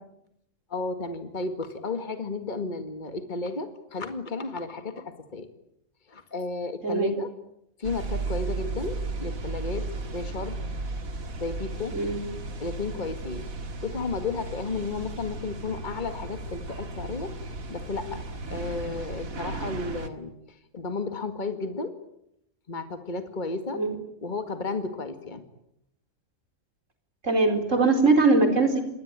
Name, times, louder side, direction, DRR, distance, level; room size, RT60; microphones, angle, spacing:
voice 1, 0.7-5.5 6.1-7.3 7.8-10.6 11.4-12.0 12.6-13.5 13.8-17.3 17.7-18.2 18.5-21.9 22.7-23.8 24.2-25.4, left 3 dB, 35° left, 8 dB, 2.1 m, -33 dB
voice 2, 6.8-7.1 11.9-12.2 23.7-24.0 27.2-28.8, right 3 dB, 65° right, 6 dB, 4.8 m, -21 dB
sound 1, 7.8-20.1, right 3 dB, 85° right, 2.3 m, -35 dB
28.0 x 21.0 x 8.9 m, 0.79 s
omnidirectional pair, 1.4 m